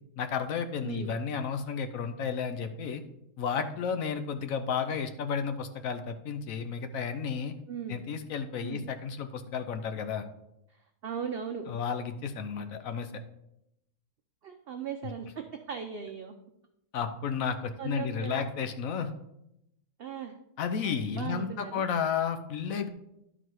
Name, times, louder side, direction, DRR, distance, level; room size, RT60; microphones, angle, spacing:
voice 1, 0.2-3.0 3.4-7.5 7.9-10.3 11.7-13.1 16.9-19.1 20.6-22.9, left 6 dB, 65° left, 8 dB, 1.0 m, -32 dB
voice 2, 0.8-1.2 7.7-8.0 8.6-8.8 11.0-11.7 12.6-12.7 14.4-16.3 17.8-18.5 20.0-20.4 20.8-21.8, right 7 dB, 90° right, 5 dB, 0.5 m, -38 dB
11.0 x 4.0 x 4.6 m, 0.83 s
omnidirectional pair, 1.7 m